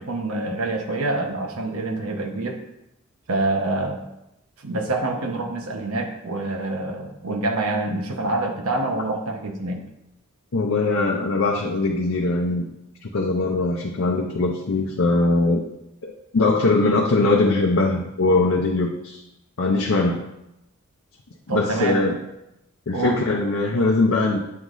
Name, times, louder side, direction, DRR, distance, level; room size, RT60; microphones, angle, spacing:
voice 1, 0.0-2.6 3.3-4.0 4.6-9.8 21.5-22.0 22.9-23.2, right 2 dB, 85° right, 3 dB, 0.9 m, -26 dB
voice 2, 10.5-12.6 13.0-15.6 16.0-19.2 19.6-20.2 21.5-22.2 22.9-24.4, left 2 dB, 70° left, -1 dB, 0.6 m, -21 dB
8.5 x 3.8 x 3.1 m, 0.87 s
head